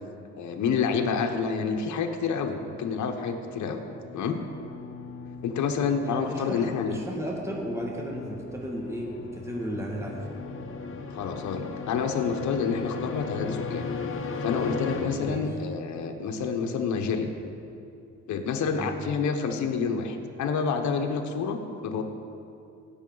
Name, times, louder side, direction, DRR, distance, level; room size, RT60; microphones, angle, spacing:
voice 1, 0.4-3.8 4.1-4.4 5.4-7.0 11.1-13.9 14.4-17.3 18.3-22.0, left 5 dB, 70° left, 4 dB, 0.9 m, -28 dB
sound 1, 3.2-15.9, left 4 dB, 45° left, 1.0 m, -37 dB
voice 2, 5.9-10.4 15.2-15.5 18.6-18.9, equal, 10° right, -2 dB, 1.8 m, -35 dB
16.5 x 6.6 x 3.9 m, 2.7 s
cardioid pair, 90°, 30 cm